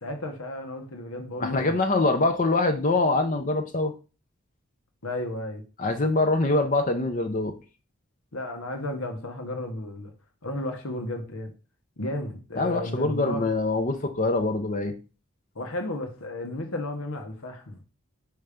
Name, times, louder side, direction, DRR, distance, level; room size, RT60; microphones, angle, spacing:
voice 1, 0.0-1.8 5.0-5.6 8.3-10.1 10.4-11.5 12.0-13.4 15.5-17.8, left 1 dB, 90° left, 1.3 m, -33 dB
voice 2, 1.4-3.9 5.8-7.5 12.6-14.9, left 2 dB, 35° left, 0.6 m, -24 dB
5.6 x 3.4 x 5.0 m
head